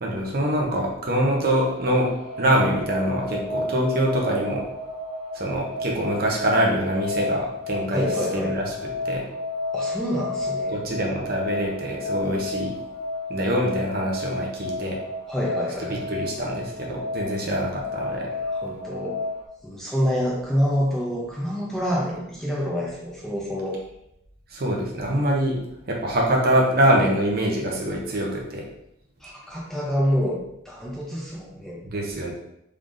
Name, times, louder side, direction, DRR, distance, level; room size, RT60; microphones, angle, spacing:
voice 1, 0.0-2.1 2.4-4.6 5.3-8.0 8.3-8.6 9.0-9.2 10.7-12.7 13.3-15.0 16.1-18.3 24.5-25.6 25.9-28.6 31.8-32.3, right 1 dB, 45° right, -1 dB, 0.7 m, -24 dB
sound 1, 1.4-19.5, left 2 dB, 30° left, 1.2 m, -32 dB
voice 2, 7.9-8.6 9.7-10.9 15.3-16.1 18.5-19.2 19.6-23.8 29.2-31.9, equal, ahead, -5 dB, 0.6 m, -27 dB
3.7 x 3.2 x 2.6 m, 0.80 s
head